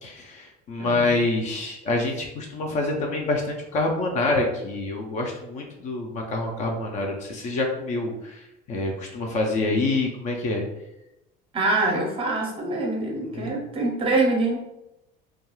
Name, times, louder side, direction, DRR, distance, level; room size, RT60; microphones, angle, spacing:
voice 1, 0.0-10.6 13.3-13.5, left 2 dB, 40° left, 1 dB, 0.4 m, -26 dB
voice 2, 0.8-1.2 11.5-14.6, right 2 dB, 30° right, 0 dB, 0.6 m, -25 dB
2.3 x 2.3 x 3.0 m, 0.89 s
cardioid pair, 155°, 19 cm